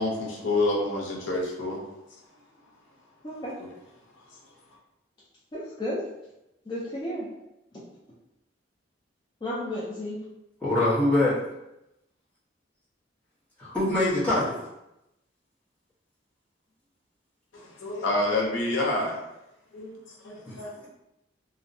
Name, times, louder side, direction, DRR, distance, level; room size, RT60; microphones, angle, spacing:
voice 1, 0.0-1.8 3.6-3.7 17.5-19.2 19.7-20.9, left 2 dB, 90° left, -2 dB, 0.6 m, -28 dB
voice 2, 3.2-3.5 5.5-6.0 6.7-7.3 7.7-7.9 9.4-10.2, left 1 dB, 25° left, -8 dB, 0.4 m, -33 dB
voice 3, 10.6-11.4 13.6-14.7 20.4-20.6, left 1 dB, 10° left, -11 dB, 0.8 m, -24 dB
2.6 x 2.0 x 2.6 m, 0.89 s
head